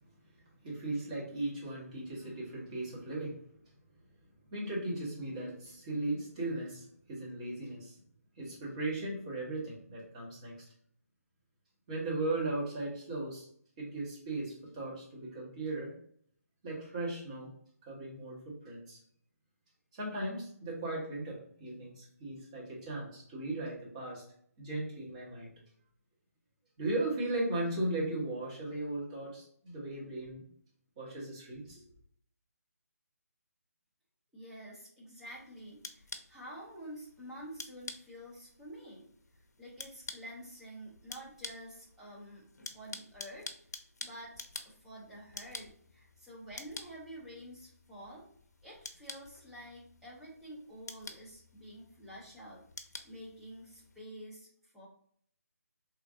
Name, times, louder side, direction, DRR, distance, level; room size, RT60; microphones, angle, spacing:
voice 1, 0.6-3.4 4.5-8.0 8.4-10.6 11.9-13.5 13.8-15.9 16.6-17.5 17.8-19.0 19.9-24.2 24.6-25.5 26.8-30.4 31.0-31.8, right 2 dB, 25° right, -5 dB, 1.3 m, -37 dB
voice 2, 34.3-39.1 39.6-43.5 44.0-44.3 44.6-48.3 48.6-52.6 53.0-54.9, equal, 5° right, -7 dB, 0.5 m, -49 dB
sound 1, 35.2-54.0, left 3 dB, 80° left, 0.6 m, -49 dB
3.2 x 2.6 x 3.5 m, 0.62 s
hypercardioid pair, 165°, 9 cm